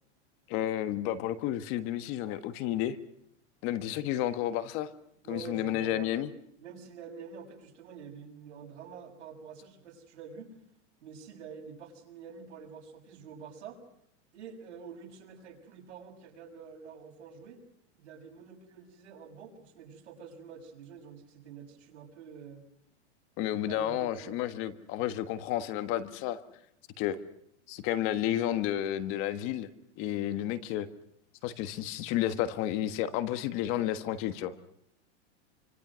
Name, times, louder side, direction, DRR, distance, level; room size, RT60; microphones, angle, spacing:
voice 1, 0.5-3.0 3.6-4.9 5.3-6.3 23.4-26.4 27.0-27.2 27.7-29.7 30.0-30.9 31.4-34.5, left 12 dB, 35° left, 11 dB, 1.5 m, -31 dB
voice 2, 5.2-10.5 11.0-13.8 14.3-17.6 17.9-22.7 23.5-24.4, right 6 dB, 85° right, 1 dB, 7.0 m, -47 dB
27.0 x 25.5 x 6.3 m, 0.72 s
supercardioid pair, 160°, 35 cm